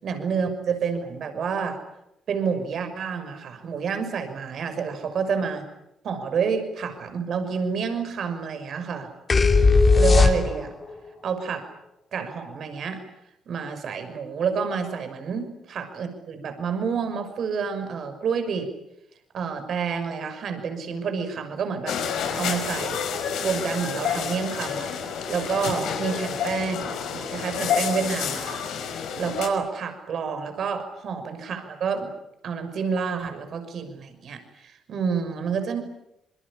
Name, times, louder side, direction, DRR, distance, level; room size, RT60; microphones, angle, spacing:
voice 1, 0.0-1.8 2.3-5.7 6.0-9.1 9.9-10.7 11.2-11.7 12.1-13.0 13.5-18.7 19.3-22.0 22.3-23.0 23.4-28.6 29.2-32.1 32.4-35.8, right 6 dB, 55° right, 8 dB, 6.1 m, -29 dB
sound 1, 9.3-10.8, left 4 dB, 30° left, 3.4 m, -17 dB
sound 2, 21.9-29.5, left 7 dB, 75° left, 5.4 m, -29 dB
27.0 x 22.5 x 8.7 m, 0.84 s
cardioid pair, 95°, 0 cm